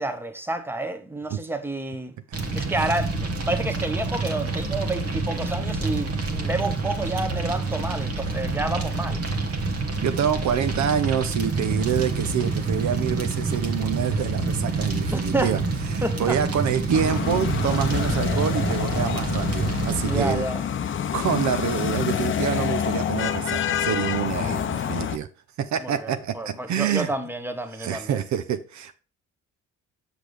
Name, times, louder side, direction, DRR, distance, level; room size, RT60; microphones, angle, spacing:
voice 1, 0.0-2.1 2.5-9.2 15.1-15.5 16.0-16.4 20.0-20.6 25.8-28.2, right 2 dB, 5° right, 1.0 m, -29 dB
Fire, 2.3-20.3, right 3 dB, 50° right, 1.4 m, -27 dB
voice 2, 10.0-15.6 15.9-20.4 21.1-25.3 25.6-27.1 27.8-28.9, right 8 dB, 70° right, 0.8 m, -26 dB
sound 1, 16.9-25.2, left 8 dB, 40° left, 0.6 m, -27 dB
6.9 x 6.0 x 3.3 m
cardioid pair, 90°, 30 cm